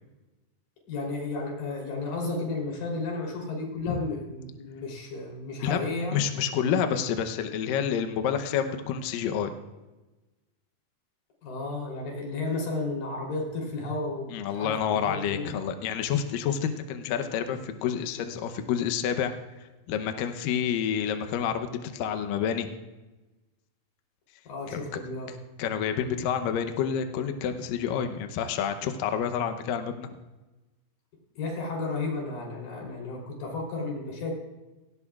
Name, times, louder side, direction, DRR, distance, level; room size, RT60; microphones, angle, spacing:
voice 1, 0.9-6.2 11.4-15.5 24.4-25.3 31.4-34.3, left 3 dB, 55° left, -1 dB, 4.9 m, -33 dB
voice 2, 6.1-9.5 14.3-19.3 19.6-22.8 24.7-25.0 25.6-30.1, left 8 dB, 90° left, 7 dB, 1.9 m, -29 dB
18.0 x 18.0 x 2.4 m, 1.1 s
omnidirectional pair, 5.1 m